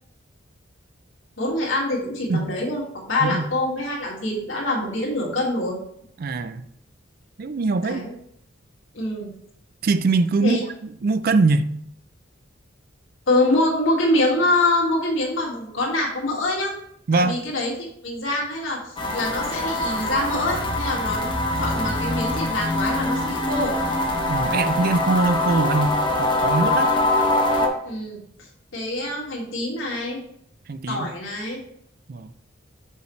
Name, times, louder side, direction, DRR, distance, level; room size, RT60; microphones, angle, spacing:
voice 1, 1.4-5.8 7.8-8.1 8.9-9.3 10.4-10.6 13.3-16.7 17.1-23.7 27.8-28.2 28.7-30.2 30.9-31.6, left 1 dB, 80° left, -3 dB, 2.0 m, -25 dB
voice 2, 6.2-6.6 7.4-8.0 9.8-10.6 10.8-11.7 17.1-17.4 24.3-26.9 30.7-31.1 32.1-32.3, right 3 dB, 50° right, 12 dB, 0.4 m, -22 dB
sound 1, 19.0-27.7, left 1 dB, 25° left, 0.9 m, -23 dB
6.5 x 5.4 x 3.1 m, 0.72 s
head